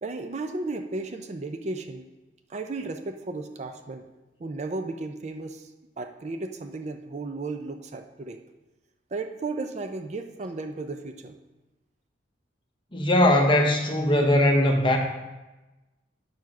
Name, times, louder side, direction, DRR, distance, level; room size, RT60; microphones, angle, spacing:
voice 1, 0.0-2.1 2.5-4.1 4.4-5.7 6.0-8.4 9.1-11.4, right 3 dB, 35° right, 7 dB, 0.4 m, -34 dB
voice 2, 12.9-15.0, left 1 dB, 25° left, 2 dB, 0.9 m, -20 dB
7.5 x 4.7 x 5.9 m, 1.1 s
head